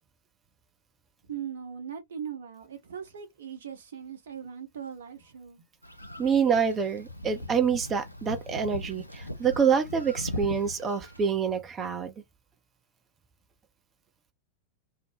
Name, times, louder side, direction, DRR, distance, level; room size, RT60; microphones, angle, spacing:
voice 1, 1.3-5.7, right 8 dB, 65° right, 1.0 m, -39 dB
sound 1, 5.8-11.3, left 1 dB, 85° left, 0.4 m, -39 dB
voice 2, 6.2-12.1, right 7 dB, 25° right, 0.6 m, -26 dB
2.7 x 2.1 x 3.4 m
figure-of-eight pair, 90°, 0 cm